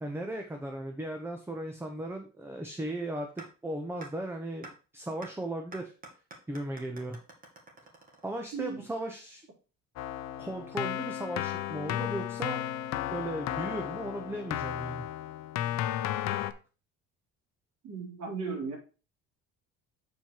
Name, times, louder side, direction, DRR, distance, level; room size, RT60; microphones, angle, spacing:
voice 1, 0.0-5.9 6.5-7.2 8.2-9.5 10.4-15.0, right 1 dB, 10° right, 4 dB, 0.8 m, -37 dB
sound 1, 3.4-3.5 4.0-4.1 4.6-4.7 5.2-5.3 5.7-8.6, right 3 dB, 30° right, 2.1 m, -47 dB
voice 2, 8.5-8.9 17.8-18.8, right 5 dB, 60° right, -1 dB, 3.7 m, -36 dB
Keyboard (musical), 10.0-16.5, left 12 dB, 65° left, 0.7 m, -34 dB
7.4 x 4.4 x 4.6 m, 0.34 s
cardioid pair, 120°, 30 cm